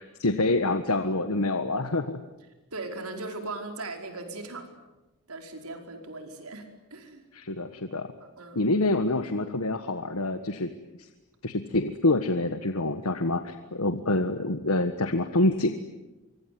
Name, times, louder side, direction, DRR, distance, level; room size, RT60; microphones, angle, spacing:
voice 1, 0.0-2.2 7.3-8.1 8.5-10.7 11.0-11.1 11.4-15.7, left 2 dB, 85° left, 8 dB, 1.5 m, -26 dB
voice 2, 2.7-4.7 5.3-7.2 8.4-8.6, right 2 dB, 85° right, 4 dB, 5.0 m, -38 dB
25.0 x 24.5 x 9.5 m, 1.1 s
head